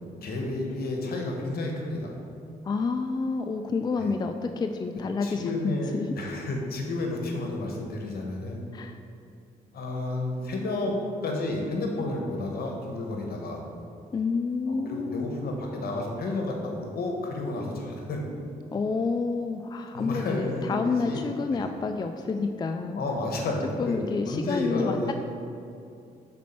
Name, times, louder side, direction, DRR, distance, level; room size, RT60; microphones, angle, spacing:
voice 1, 0.2-2.1 4.0-4.1 5.2-8.6 9.7-11.0 11.2-13.6 14.7-18.2 19.9-21.2 21.5-21.7 22.9-24.0 24.3-25.1, left 2 dB, 65° left, 1 dB, 1.2 m, -31 dB
voice 2, 2.6-6.1 8.7-9.0 14.1-15.3 18.7-23.0 23.8-25.1, left 4 dB, 25° left, 6 dB, 0.3 m, -29 dB
6.2 x 4.1 x 4.4 m, 2.6 s
supercardioid pair, 60°, 17 cm